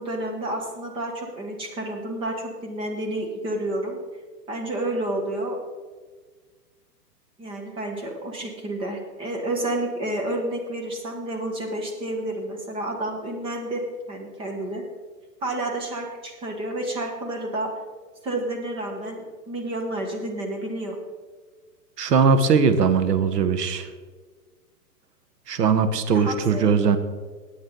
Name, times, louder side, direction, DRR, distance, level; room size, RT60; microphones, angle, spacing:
voice 1, 0.0-4.0 4.5-5.6 7.4-14.8 15.4-17.7 18.2-21.0 26.1-26.7, right 1 dB, 10° right, 2 dB, 1.1 m, -30 dB
voice 2, 22.0-23.9 25.5-27.0, right 5 dB, 80° right, 10 dB, 1.4 m, -20 dB
18.0 x 8.7 x 4.0 m, 1.5 s
hypercardioid pair, 160°, 48 cm